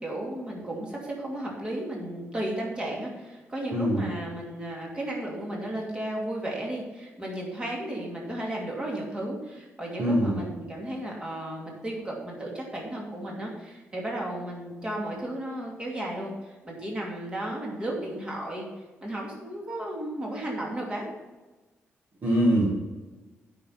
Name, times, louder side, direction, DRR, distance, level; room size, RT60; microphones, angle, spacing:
voice 1, 0.0-18.7 19.0-21.1, right 1 dB, 20° right, -2 dB, 2.6 m, -34 dB
voice 2, 3.7-4.1 10.0-10.5 22.2-22.8, equal, 40° right, -3 dB, 1.9 m, -23 dB
9.1 x 5.9 x 5.8 m, 1.2 s
cardioid pair, 135°, 5 cm